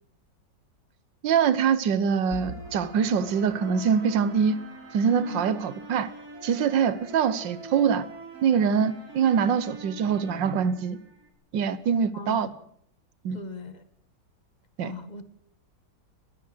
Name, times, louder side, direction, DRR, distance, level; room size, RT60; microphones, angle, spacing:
voice 1, 1.2-4.6 4.9-6.1 6.4-8.0 8.4-11.0 11.5-12.5 13.2-13.4 14.8-14.9, right 7 dB, 90° right, 1.7 m, -24 dB
sound 1, 2.3-11.3, right 2 dB, 55° right, 3.3 m, -43 dB
voice 2, 12.1-12.6 13.3-13.8 14.8-15.2, left 2 dB, 25° left, 1.7 m, -39 dB
20.0 x 16.5 x 7.8 m
omnidirectional pair, 1.9 m